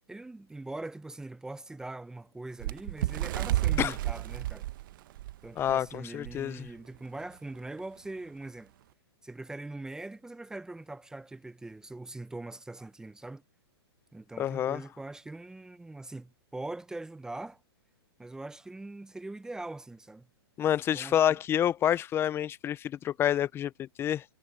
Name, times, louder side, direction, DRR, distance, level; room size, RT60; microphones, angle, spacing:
voice 1, 0.1-4.7 5.4-8.7 9.2-13.4 14.1-17.6 18.2-20.3 20.9-21.4, right 2 dB, 5° right, 0.9 m, -42 dB
Bird, 2.6-5.8 6.3-6.4 6.7-7.0 7.7-7.8, right 15 dB, 50° right, 1.0 m, -31 dB
voice 2, 5.6-6.7 14.4-14.8 20.6-24.2, left 10 dB, 15° left, 0.6 m, -28 dB
hypercardioid pair, 135°, 14 cm